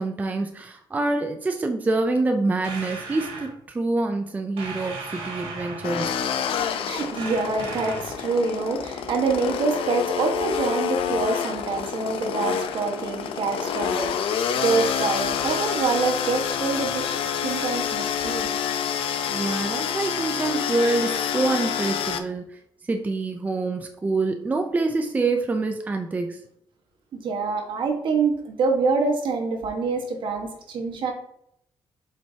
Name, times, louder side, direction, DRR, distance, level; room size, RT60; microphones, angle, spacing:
voice 1, 0.0-6.2 19.3-26.4, right 3 dB, 15° right, 5 dB, 0.5 m, -26 dB
sound 1, 2.6-3.5 4.6-6.1 7.2-8.2, right 3 dB, 85° right, 2.2 m, -36 dB
sound 2, 5.8-22.2, left 8 dB, 80° left, 0.7 m, -27 dB
voice 2, 6.6-18.6 27.1-31.1, right 4 dB, 60° right, 2 dB, 1.5 m, -26 dB
7.4 x 5.4 x 2.8 m, 0.71 s
cardioid pair, 155°, 9 cm